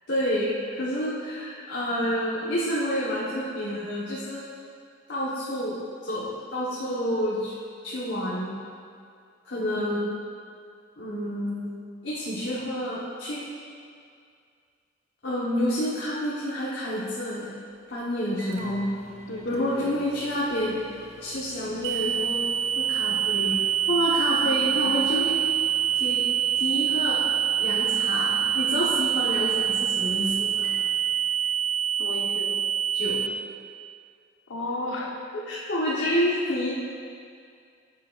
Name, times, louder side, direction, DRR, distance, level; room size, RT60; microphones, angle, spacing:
voice 1, 0.1-4.4 5.1-7.5 7.8-8.5 9.4-10.2 11.0-11.7 12.0-13.4 15.2-17.6 17.9-18.8 19.4-20.8 21.2-22.4 22.8-23.6 23.9-25.4 25.9-26.2 26.5-27.2 27.6-30.6 32.9-33.2 35.5-36.8, equal, 60° left, -8 dB, 1.1 m, -28 dB
voice 2, 9.8-10.1 18.5-18.9 19.3-20.0 24.4-25.0 32.0-32.5 34.5-35.2, left 2 dB, 85° left, 0 dB, 1.0 m, -35 dB
Microwave oven, 17.7-31.7, right 2 dB, 35° right, 0.8 m, -49 dB
sound 1, 21.8-33.3, right 10 dB, 60° right, 0.3 m, -25 dB
9.4 x 7.6 x 2.4 m, 2.3 s
head